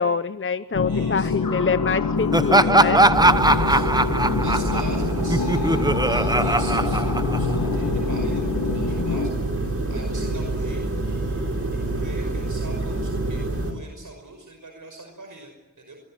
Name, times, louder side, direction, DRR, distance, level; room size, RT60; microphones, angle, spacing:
voice 1, 0.0-3.0, left 5 dB, 35° left, 12 dB, 0.8 m, -25 dB
sound 1, 0.7-9.3, left 5 dB, 70° left, 1.8 m, -26 dB
voice 2, 0.8-1.4 3.4-3.9 4.4-16.0, right 2 dB, 65° right, 3 dB, 5.5 m, -42 dB
Laughter, 2.3-7.8, right 2 dB, 10° right, 0.9 m, -20 dB
sound 2, 3.1-13.7, right 2 dB, 40° right, 6.0 m, -27 dB
25.0 x 22.0 x 7.8 m, 1.1 s
wide cardioid pair, 60°, 34 cm